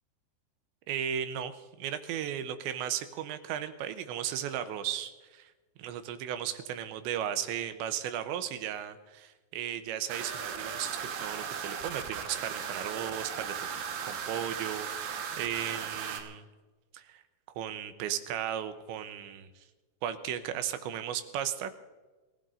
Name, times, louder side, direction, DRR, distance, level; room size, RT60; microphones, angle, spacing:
voice 1, 0.9-5.5 5.8-13.5 14.0-16.5 16.9-17.2 17.6-19.5 20.0-21.7, right 10 dB, 85° right, 9 dB, 3.1 m, -35 dB
sound 1, 10.1-16.2, right 7 dB, 70° right, 3.4 m, -37 dB
27.5 x 15.5 x 2.7 m, 1.3 s
omnidirectional pair, 5.2 m